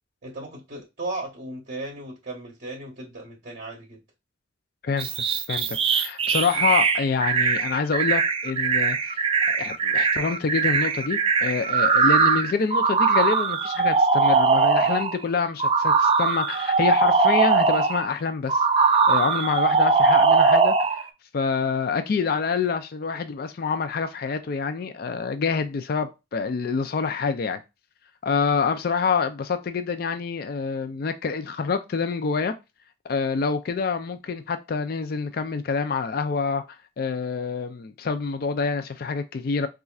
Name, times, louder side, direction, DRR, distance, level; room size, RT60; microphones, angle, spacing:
voice 1, 0.2-4.0, right 2 dB, 50° right, 0.8 m, -36 dB
sound 1, 5.0-15.2 15.6-18.1 18.5-21.0, right 4 dB, 30° right, 0.4 m, -21 dB
voice 2, 5.5-21.1 21.3-27.6 28.2-32.5 33.0-36.6 37.0-39.7, left 5 dB, 55° left, 0.4 m, -27 dB
4.1 x 2.4 x 2.3 m
head